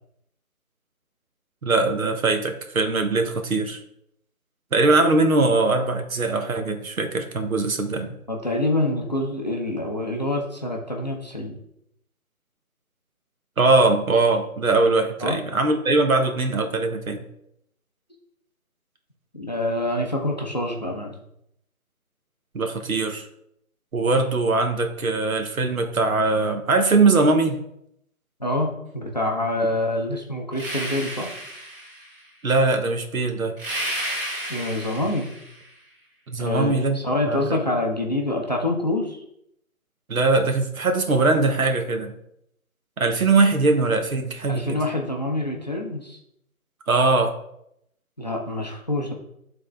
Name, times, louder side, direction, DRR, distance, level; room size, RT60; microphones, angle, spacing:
voice 1, 1.6-3.8 4.7-8.1 13.6-17.2 22.5-23.3 23.9-27.6 32.4-33.6 36.3-37.0 37.3-37.4 40.1-42.1 43.0-44.8 46.9-47.3, right 3 dB, 70° right, 5 dB, 1.1 m, -21 dB
voice 2, 8.1-11.6 15.2-15.4 19.3-21.1 28.4-31.3 34.5-35.3 36.4-39.2 44.5-46.2 48.2-49.1, left 1 dB, 30° left, 1 dB, 0.5 m, -26 dB
sound 1, 30.5-32.2 33.6-35.6, right 1 dB, 40° right, 1.3 m, -32 dB
7.9 x 3.7 x 3.3 m, 0.76 s
figure-of-eight pair, 160°, 43 cm